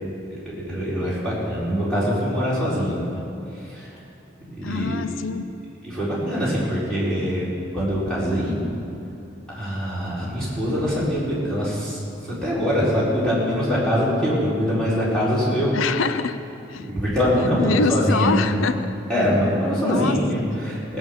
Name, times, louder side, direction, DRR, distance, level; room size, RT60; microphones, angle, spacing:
voice 1, 0.3-3.2 3.6-3.9 4.4-5.1 5.8-7.5 7.7-8.6 9.5-15.7 16.8-18.5 19.1-21.0, equal, 5° left, -9 dB, 4.3 m, -23 dB
voice 2, 4.6-5.5 15.7-16.4 16.7-16.9 17.6-19.0 19.8-20.2 20.5-20.7, left 5 dB, 85° left, 11 dB, 0.5 m, -25 dB
17.5 x 8.4 x 7.1 m, 2.7 s
head